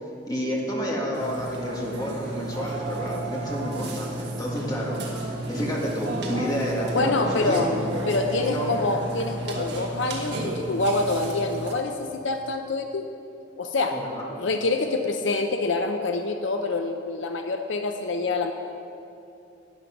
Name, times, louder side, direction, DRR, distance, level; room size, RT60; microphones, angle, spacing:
voice 1, 0.3-7.7 8.0-8.1 8.5-8.7 13.9-14.2, equal, 20° left, -3 dB, 2.0 m, -30 dB
Burping eructation, 1.1-11.7, right 2 dB, 55° right, 1.5 m, -32 dB
voice 2, 6.9-7.7 8.1-13.1 13.6-14.0 14.4-18.5, left 3 dB, 70° left, 5 dB, 0.6 m, -26 dB
11.5 x 9.2 x 5.9 m, 2.8 s
head